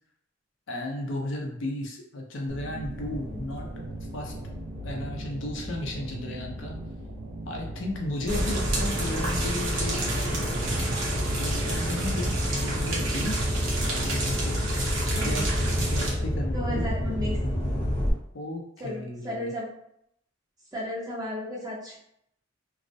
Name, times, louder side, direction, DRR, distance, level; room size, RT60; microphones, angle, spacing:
voice 1, 0.7-3.7 4.1-4.3 4.8-6.7 7.5-10.6 11.0-13.5 13.9-14.7 15.1-15.5 15.8-16.9 18.3-19.5, left 1 dB, 70° left, 0 dB, 0.5 m, -34 dB
sound 1, 2.5-16.0, right 2 dB, 65° right, 0.3 m, -40 dB
sound 2, 2.8-9.5 10.1-18.1, left 1 dB, 35° left, 0.7 m, -33 dB
sound 3, 8.3-16.1, right 1 dB, 90° right, 0.7 m, -28 dB
voice 2, 15.1-15.5 16.5-17.4 18.8-19.7 20.7-22.0, left 1 dB, 20° right, -5 dB, 0.6 m, -34 dB
2.3 x 2.0 x 2.6 m, 0.75 s
head